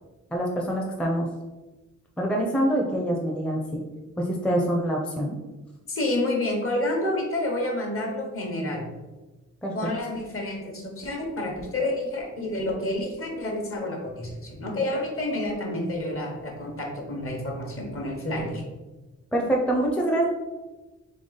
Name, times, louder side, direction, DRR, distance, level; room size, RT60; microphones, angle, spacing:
voice 1, 0.3-1.3 2.2-3.8 4.2-5.4 9.6-9.7 19.3-20.2, right 1 dB, 5° left, -1 dB, 0.5 m, -25 dB
voice 2, 5.9-8.9 9.7-18.6, left 1 dB, 50° left, 0 dB, 1.1 m, -29 dB
3.8 x 3.5 x 3.9 m, 1.1 s
wide cardioid pair, 135°, 29 cm